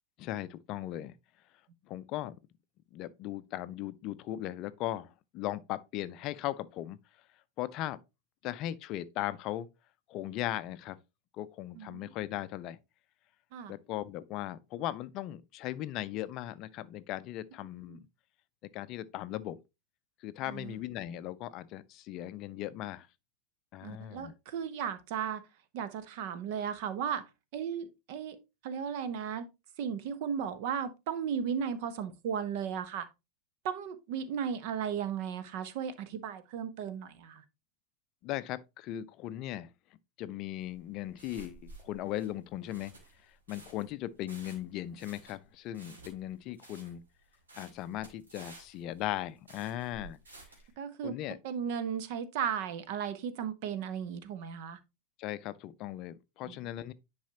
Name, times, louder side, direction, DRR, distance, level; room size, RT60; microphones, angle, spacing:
voice 1, 0.2-1.1 1.9-2.4 2.9-7.0 7.6-8.0 8.4-9.7 10.1-11.0 11.4-12.8 13.7-18.0 18.6-19.6 20.2-23.1 23.7-24.3 38.2-39.7 40.2-42.9 43.3-47.0 47.6-50.2 51.0-51.4 55.2-56.9, left 13 dB, 40° left, 0.5 m, -38 dB
voice 2, 11.7-12.1 13.5-13.7 17.9-18.0 20.5-20.8 23.8-25.4 25.7-27.2 27.5-28.4 28.6-29.5 29.8-33.1 33.6-37.4 50.8-51.1 51.4-54.8 56.5-56.6, right 8 dB, 45° right, 0.9 m, -35 dB
sound 1, 40.6-50.7, right 2 dB, 70° right, 2.4 m, -53 dB
10.0 x 4.8 x 2.9 m
figure-of-eight pair, 90°, 0 cm